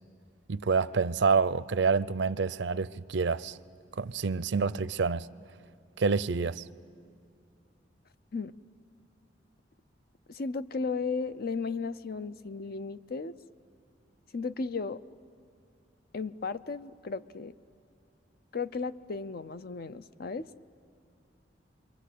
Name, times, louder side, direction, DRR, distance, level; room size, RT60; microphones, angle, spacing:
voice 1, 0.5-3.6 4.0-5.3 6.0-6.6, right 5 dB, 70° right, 0.6 m, -27 dB
voice 2, 10.3-13.3 14.3-15.0 16.1-17.5 18.5-20.5, left 4 dB, 55° left, 0.6 m, -35 dB
28.0 x 23.5 x 8.4 m
head